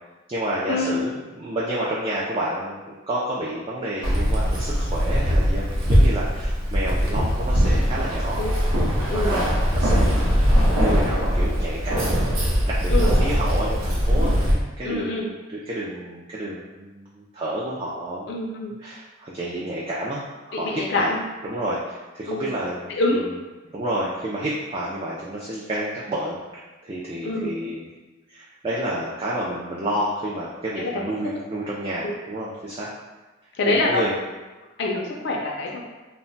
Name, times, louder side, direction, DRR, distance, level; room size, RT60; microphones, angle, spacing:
voice 1, 0.3-8.4 9.1-10.3 10.6-18.3 18.8-20.2 20.5-21.1 21.4-23.3 23.7-27.9 28.3-32.9 33.7-34.2, right 1 dB, 25° right, -6 dB, 0.3 m, -30 dB
Keys jangling, 4.0-14.5, equal, 85° right, 0.7 m, -21 dB
voice 2, 14.8-15.3 18.3-18.7 20.5-21.2 22.3-22.5 22.9-23.2 27.2-27.6 30.8-30.9 33.6-34.0 34.8-35.9, left 2 dB, 55° left, -2 dB, 0.4 m, -25 dB
2.2 x 2.1 x 3.8 m, 1.2 s
head